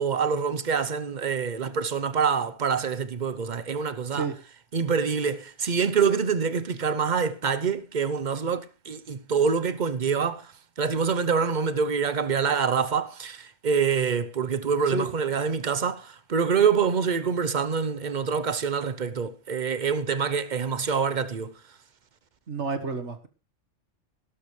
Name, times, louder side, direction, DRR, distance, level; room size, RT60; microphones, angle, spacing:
voice 1, 0.0-4.3 4.7-10.5 10.8-21.5, right 6 dB, 45° right, 0.9 m, -26 dB
voice 2, 22.5-23.3, right 4 dB, 70° right, 1.8 m, -30 dB
17.0 x 13.0 x 3.2 m
omnidirectional pair, 1.2 m